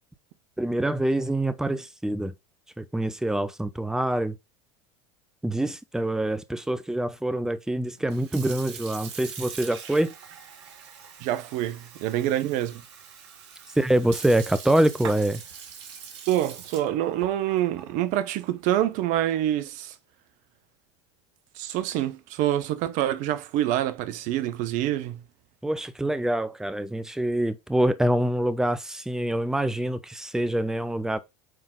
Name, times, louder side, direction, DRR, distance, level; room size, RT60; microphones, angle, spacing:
voice 1, 0.6-2.3 2.8-4.4 5.4-10.1 13.8-15.4 25.6-31.2, right 1 dB, 5° right, 0.8 m, -25 dB
Sink (filling or washing) / Fill (with liquid), 8.0-19.5, right 7 dB, 75° right, 1.8 m, -43 dB
voice 2, 11.2-12.8 16.3-19.9 21.5-25.2, right 12 dB, 55° right, 1.0 m, -26 dB
9.3 x 3.8 x 3.8 m
hypercardioid pair, 90°, 15 cm